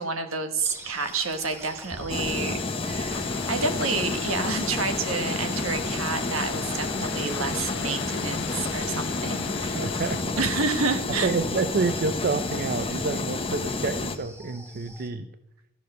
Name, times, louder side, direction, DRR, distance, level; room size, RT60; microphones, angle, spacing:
voice 1, 0.0-2.6 2.8-9.8 10.4-11.3, right 4 dB, 80° right, 7 dB, 1.3 m, -29 dB
sound 1, 0.6-15.1, right 1 dB, 10° right, 1.3 m, -45 dB
sound 2, 2.1-14.2, left 3 dB, 25° left, 0.8 m, -30 dB
sound 3, 3.1-10.2, left 7 dB, 60° left, 0.7 m, -40 dB
voice 2, 9.5-10.4 11.2-15.3, right 4 dB, 45° right, 9 dB, 0.5 m, -29 dB
13.0 x 6.5 x 6.6 m, 0.84 s
head